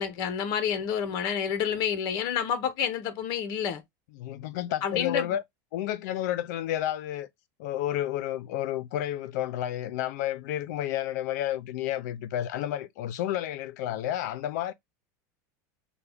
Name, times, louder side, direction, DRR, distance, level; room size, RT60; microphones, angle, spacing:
voice 1, 0.0-3.8 4.8-5.3, left 8 dB, 45° left, 0.9 m, -29 dB
voice 2, 4.1-5.4 5.7-7.3 7.6-14.7, left 12 dB, 70° left, 0.6 m, -31 dB
5.7 x 2.3 x 3.4 m
supercardioid pair, 150°, 10 cm